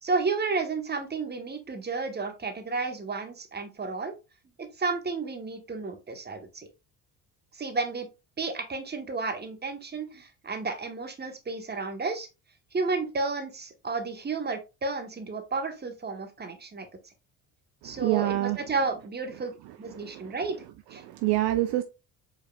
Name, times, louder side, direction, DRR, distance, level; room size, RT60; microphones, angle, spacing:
voice 1, 0.0-4.1 4.6-6.7 7.5-8.1 8.4-12.3 12.7-16.9 17.8-19.5 19.8-20.6 20.9-21.0, right 4 dB, 20° right, 1.0 m, -32 dB
voice 2, 17.8-18.6 19.9-20.4 21.0-21.8, right 15 dB, 60° right, 0.5 m, -27 dB
4.5 x 3.4 x 2.2 m
hypercardioid pair, 60°, 44 cm